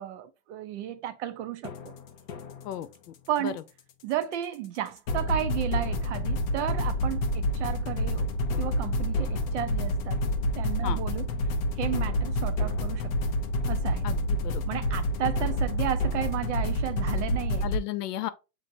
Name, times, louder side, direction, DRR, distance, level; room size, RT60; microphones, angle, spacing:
voice 1, 0.0-1.9 3.3-3.6 4.0-8.3 8.6-10.2 10.6-11.3 11.8-13.3 13.7-14.1 14.7-17.6, right 11 dB, 50° right, 0.5 m, -33 dB
sound 1, 1.6-2.8 5.1-17.8, left 1 dB, 30° left, 0.4 m, -28 dB
voice 2, 2.6-3.1 3.4-3.5 10.8-11.0 14.0-14.6 17.6-18.3, left 12 dB, 75° left, 0.8 m, -34 dB
7.0 x 2.7 x 2.6 m
supercardioid pair, 155°, 48 cm